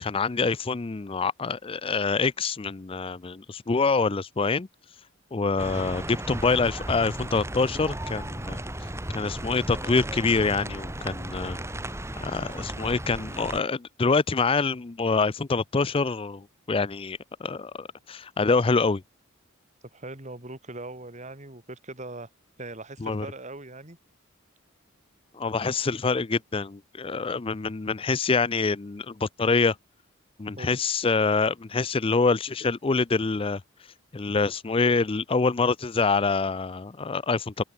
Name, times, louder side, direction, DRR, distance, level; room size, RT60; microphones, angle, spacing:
voice 1, 0.0-4.7 5.3-8.6 9.1-11.6 12.2-19.0 23.0-23.3 25.3-29.8 30.4-33.6 34.1-37.6, left 4 dB, 25° left, 0.5 m, -26 dB
voice 2, 5.5-5.9 19.9-22.3 22.6-24.0 30.6-30.8, right 2 dB, 35° right, 3.4 m, -40 dB
sound 1, 5.6-13.6, right 1 dB, 15° right, 6.1 m, -35 dB
head